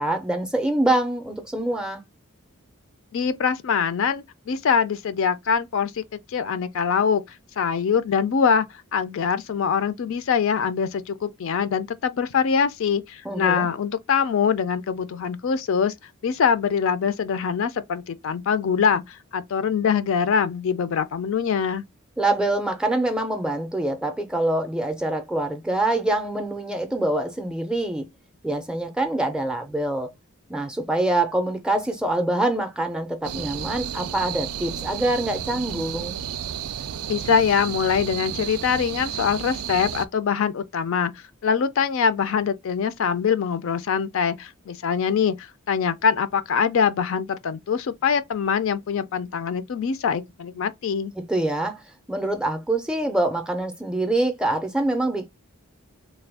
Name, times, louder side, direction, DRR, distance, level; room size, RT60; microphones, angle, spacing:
voice 1, 0.0-2.0 13.2-13.7 22.2-28.1 28.4-30.1 30.5-36.1 51.2-51.8 52.1-55.3, right 1 dB, 5° right, 0.4 m, -25 dB
voice 2, 3.1-6.0 6.3-7.2 7.6-8.7 8.9-15.9 16.2-21.8 37.1-41.1 41.4-51.1, left 6 dB, 60° left, 0.4 m, -23 dB
sound 1, 33.2-40.1, right 9 dB, 80° right, 0.4 m, -32 dB
3.3 x 2.2 x 3.4 m
head